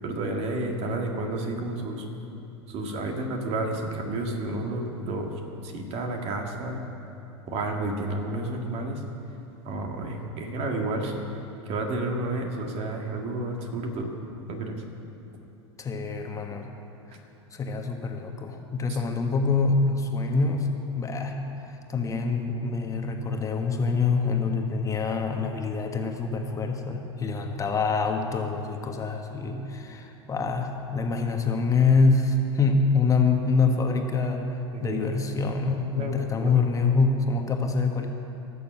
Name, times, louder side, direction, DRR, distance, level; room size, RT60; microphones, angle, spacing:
voice 1, 0.0-2.0 2.7-5.3 5.6-6.8 7.5-9.0 9.6-11.1 11.7-14.1 14.5-14.8 18.9-19.0 34.7-35.1 35.9-36.6, right 2 dB, 45° right, 2 dB, 2.0 m, -31 dB
voice 2, 15.8-16.7 17.5-20.7 20.9-38.1, left 4 dB, 20° left, 3 dB, 1.3 m, -25 dB
17.5 x 6.9 x 7.3 m, 2.9 s
hypercardioid pair, 85°, 14 cm